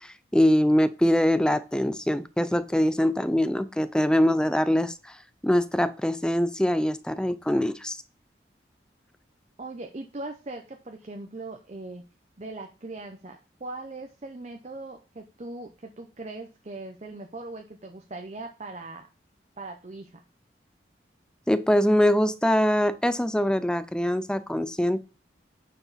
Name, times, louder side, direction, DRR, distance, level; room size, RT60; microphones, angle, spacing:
voice 1, 0.0-5.2 5.4-8.0 21.5-25.0, equal, 5° left, 14 dB, 0.4 m, -23 dB
voice 2, 9.6-12.0 12.4-19.1 19.6-20.2, right 2 dB, 40° right, 4 dB, 0.7 m, -40 dB
8.9 x 4.7 x 4.0 m, 0.34 s
head